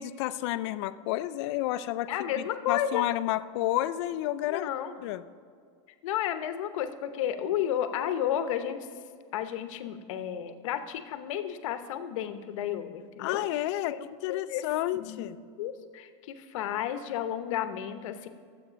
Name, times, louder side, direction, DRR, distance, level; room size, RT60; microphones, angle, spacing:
voice 1, 0.0-4.6 5.0-5.2 13.2-14.0 14.2-15.4, left 15 dB, 60° left, 14 dB, 0.5 m, -30 dB
voice 2, 2.1-3.1 4.5-5.0 6.0-8.8 9.3-14.6 14.9-18.3, left 10 dB, 75° left, 9 dB, 0.9 m, -32 dB
12.5 x 8.0 x 5.1 m, 2.2 s
supercardioid pair, 160°, 17 cm